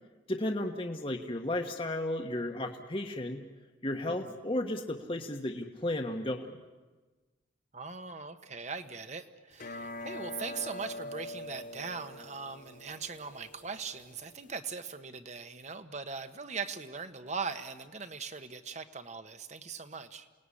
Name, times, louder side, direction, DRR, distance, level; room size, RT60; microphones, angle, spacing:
voice 1, 0.3-3.4 3.8-6.5, left 1 dB, 30° left, 3 dB, 1.4 m, -34 dB
voice 2, 7.7-20.3, right 5 dB, 35° right, 9 dB, 1.3 m, -40 dB
sound 1, 9.5-14.6, left 1 dB, 45° left, 0.9 m, -44 dB
28.5 x 19.0 x 9.9 m, 1.3 s
head